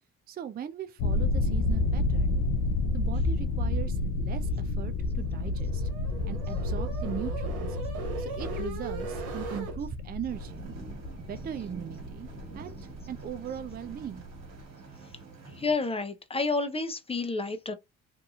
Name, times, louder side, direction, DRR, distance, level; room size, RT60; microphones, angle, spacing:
voice 1, 0.3-2.4 2.9-5.9 6.3-7.8 8.2-10.7 11.3-12.3 12.5-12.8 13.1-14.2, right 9 dB, 30° right, 0.4 m, -39 dB
sound 1, 1.0-14.6, left 2 dB, 75° left, 0.5 m, -30 dB
sound 2, 5.0-9.7, right 4 dB, 85° right, 1.0 m, -39 dB
sound 3, 10.3-15.7, right 4 dB, 65° right, 1.4 m, -46 dB
voice 2, 15.6-17.7, left 3 dB, 15° left, 0.7 m, -30 dB
2.6 x 2.6 x 2.3 m
hypercardioid pair, 60°, 35 cm